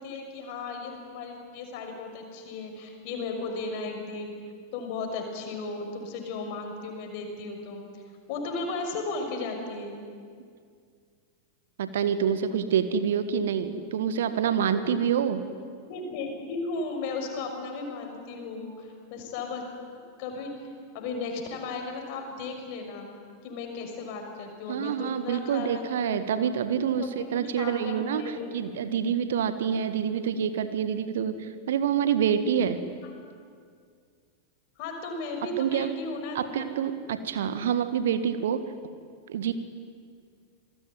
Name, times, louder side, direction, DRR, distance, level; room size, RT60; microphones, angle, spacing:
voice 1, 0.0-4.3 4.7-7.9 8.3-10.1 15.8-19.7 20.2-20.6 20.9-23.1 23.4-26.5 27.0-28.8 34.8-36.7, left 3 dB, 45° left, 4 dB, 6.1 m, -35 dB
voice 2, 11.8-15.4 24.7-32.8 35.6-35.9 36.3-38.6 39.3-39.5, right 8 dB, 60° right, 11 dB, 1.7 m, -27 dB
27.5 x 20.5 x 9.7 m, 2.1 s
figure-of-eight pair, 90°, 0 cm